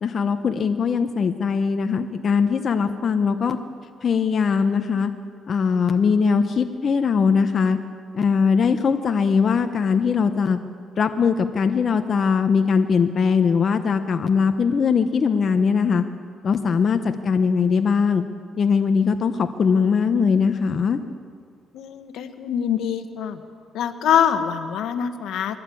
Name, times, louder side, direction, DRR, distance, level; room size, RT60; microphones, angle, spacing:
voice 1, 0.0-3.6 4.0-5.1 5.5-7.8 8.1-10.6 11.0-16.0 16.4-18.2 18.6-21.0, left 5 dB, 50° left, 7 dB, 1.0 m, -20 dB
voice 2, 21.7-23.4 23.7-25.6, left 8 dB, 80° left, 8 dB, 1.4 m, -24 dB
22.0 x 17.0 x 8.5 m, 2.1 s
cardioid pair, 90°, 0 cm